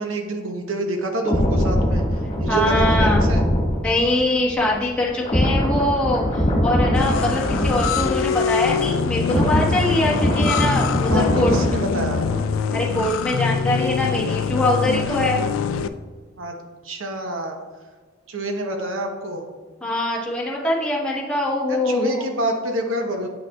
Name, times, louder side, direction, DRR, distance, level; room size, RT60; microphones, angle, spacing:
voice 1, 0.0-3.4 7.3-7.9 11.1-12.2 16.4-16.5 16.8-17.6 18.3-19.4 21.7-23.3, right 1 dB, 75° right, 3 dB, 0.9 m, -27 dB
sound 1, 1.2-8.7 9.0-12.7 13.0-13.3, equal, 35° left, 1.6 m, -22 dB
voice 2, 2.5-3.3 3.8-11.5 12.7-15.5 19.8-22.2, left 1 dB, 5° left, -5 dB, 1.2 m, -23 dB
sound 2, 6.9-15.9, left 6 dB, 80° left, 0.3 m, -24 dB
8.4 x 5.9 x 2.3 m, 1.4 s
head